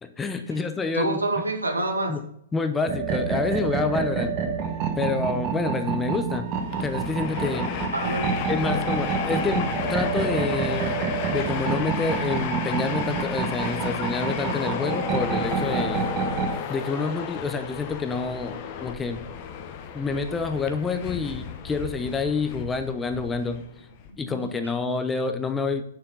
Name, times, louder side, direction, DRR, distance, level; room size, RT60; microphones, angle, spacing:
voice 1, 0.0-1.2 2.1-2.2 2.5-4.4 5.0-6.5 6.8-7.7 8.5-11.0 11.3-16.1 16.7-19.3 19.9-23.6 24.2-25.8, left 4 dB, 10° left, 8 dB, 0.8 m, -28 dB
voice 2, 0.9-2.2 7.9-8.4 11.3-11.4 24.2-24.6, right 2 dB, 80° right, 3 dB, 1.9 m, -28 dB
sound 1, 2.9-16.6, right 5 dB, 30° right, 1.5 m, -28 dB
Train, 6.5-24.1, left 8 dB, 35° left, 1.0 m, -33 dB
9.1 x 6.8 x 3.9 m, 0.67 s
figure-of-eight pair, 115°, 0 cm